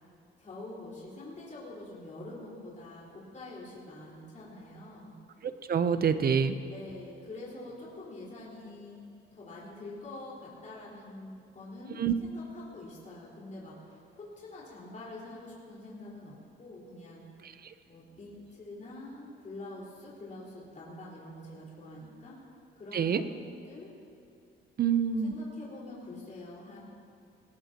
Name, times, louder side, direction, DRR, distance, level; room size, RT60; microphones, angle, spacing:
voice 1, 0.4-5.1 6.7-9.0 9.3-17.2 17.9-22.4 22.8-23.4 23.7-23.9 24.8-26.8, left 2 dB, 40° left, -6 dB, 4.8 m, -46 dB
voice 2, 5.4-6.6 12.0-12.1 17.4-17.7 22.9-23.2 24.8-25.3, right 7 dB, 50° right, 11 dB, 0.9 m, -27 dB
20.0 x 19.0 x 3.0 m, 2.5 s
cardioid pair, 90°, 20 cm